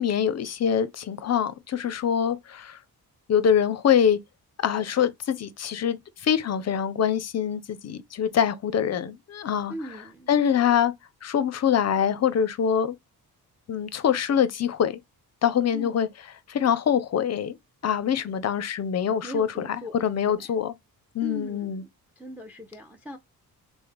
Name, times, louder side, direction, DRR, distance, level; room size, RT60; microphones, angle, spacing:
voice 1, 0.0-2.8 3.3-4.2 4.6-9.7 10.3-10.9 11.2-13.0 13.7-15.0 15.4-16.1 16.5-17.6 17.8-20.7 21.1-21.8, left 8 dB, 45° left, 0.5 m, -24 dB
voice 2, 9.7-10.3 15.7-16.1 19.2-20.0 20.3-20.6 21.2-21.9 22.2-23.2, equal, 5° right, 0.5 m, -40 dB
3.2 x 2.1 x 3.4 m
cardioid pair, 95°, 38 cm